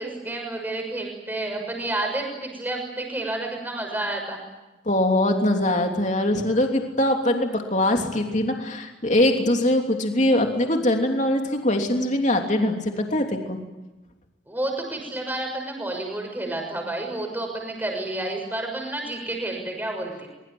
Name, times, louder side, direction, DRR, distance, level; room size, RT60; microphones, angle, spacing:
voice 1, 0.0-4.4 14.5-20.3, right 2 dB, 10° right, 2 dB, 6.4 m, -30 dB
voice 2, 4.8-13.6, left 1 dB, 40° left, 3 dB, 3.1 m, -22 dB
24.5 x 23.5 x 9.5 m, 1.0 s
head